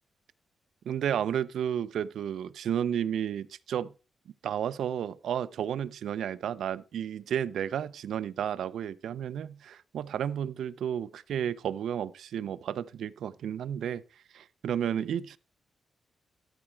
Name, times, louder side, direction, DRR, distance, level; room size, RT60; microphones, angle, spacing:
voice 1, 0.9-3.9 4.4-14.0 14.3-15.4, right 9 dB, 80° right, 0.5 m, -32 dB
12.5 x 4.9 x 4.4 m
cardioid pair, 130°, 0 cm